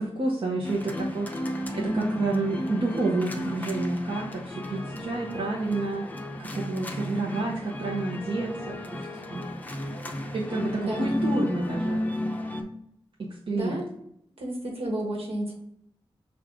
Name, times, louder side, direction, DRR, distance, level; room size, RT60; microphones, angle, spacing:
voice 1, 0.0-6.0 6.4-9.0 9.3-9.4 10.3-12.0 13.2-13.8, right 2 dB, 60° right, -4 dB, 0.8 m, -29 dB
sound 1, 0.6-12.6, left 1 dB, 15° left, 0.6 m, -33 dB
voice 2, 10.8-11.2 13.5-13.9 14.4-15.6, right 1 dB, 80° right, -1 dB, 1.2 m, -32 dB
6.1 x 2.4 x 3.6 m, 0.75 s
wide cardioid pair, 115°, 10 cm